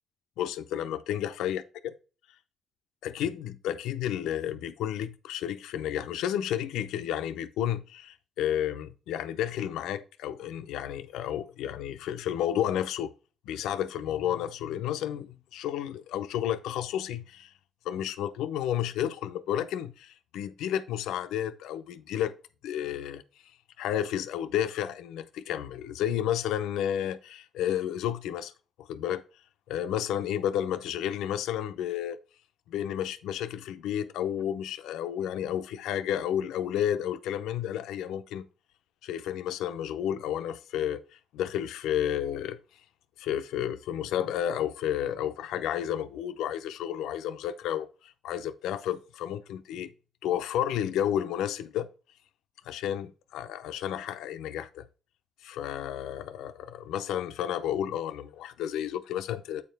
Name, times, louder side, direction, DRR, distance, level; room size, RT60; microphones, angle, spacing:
voice 1, 0.4-1.9 3.0-13.1 13.5-17.5 17.8-22.3 22.6-23.2 23.8-28.5 28.8-29.2 29.7-32.2 32.7-38.5 39.0-42.6 43.2-49.9 50.2-51.9 52.6-54.9 55.4-59.6, left 10 dB, 90° left, 0.6 m, -31 dB
8.4 x 4.5 x 3.5 m
cardioid pair, 90°, 0 cm